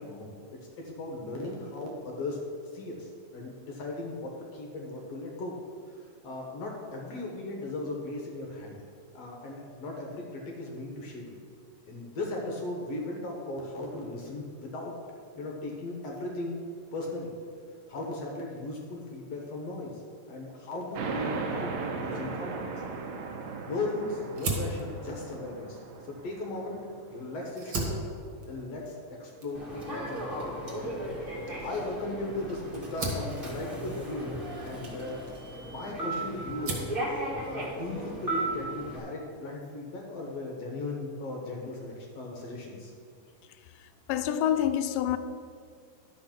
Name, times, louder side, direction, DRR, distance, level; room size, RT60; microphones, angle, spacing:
voice 1, 0.0-2.4 2.7-5.6 5.9-8.8 9.1-11.4 11.8-14.9 15.4-16.5 16.9-17.3 17.9-20.0 20.3-22.8 23.6-26.8 27.1-28.1 28.5-31.0 31.6-35.2 35.7-36.9 37.4-42.9, left 2 dB, 60° left, 1.9 m, -37 dB
sound 1, 21.0-28.1, right 4 dB, 80° right, 2.6 m, -38 dB
Fire, 24.3-27.0 27.4-36.1 36.4-37.0, right 2 dB, 50° right, 2.0 m, -38 dB
Human voice / Subway metro underground, 29.5-39.0, right 1 dB, 25° right, 1.4 m, -36 dB
voice 2, 44.1-45.2, left 10 dB, 80° left, 2.2 m, -26 dB
11.5 x 5.6 x 5.9 m
omnidirectional pair, 3.9 m